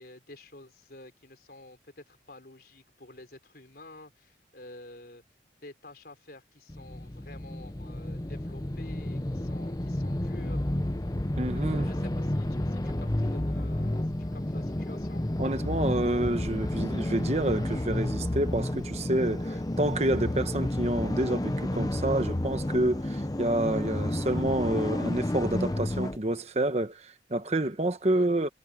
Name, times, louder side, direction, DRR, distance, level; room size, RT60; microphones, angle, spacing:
voice 1, 0.0-5.2 5.6-10.6 11.7-15.2 19.4-19.6 28.1-28.3, left 1 dB, 55° left, 4.2 m, -49 dB
sound 1, 6.7-26.2, left 1 dB, 20° left, 0.7 m, -31 dB
voice 2, 11.4-11.9 15.4-19.5 19.8-28.5, right 1 dB, 35° right, 1.2 m, -28 dB
head